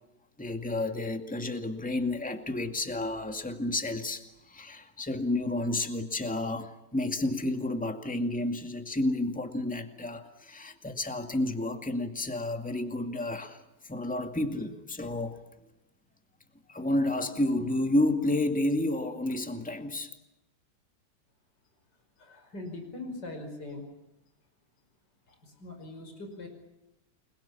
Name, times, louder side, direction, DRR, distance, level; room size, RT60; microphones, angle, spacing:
voice 1, 0.4-15.4 16.7-20.1, left 1 dB, 5° left, 6 dB, 2.2 m, -31 dB
voice 2, 22.2-23.9 25.3-26.5, left 2 dB, 55° left, 5 dB, 6.1 m, -41 dB
29.5 x 23.0 x 7.1 m, 0.90 s
omnidirectional pair, 2.1 m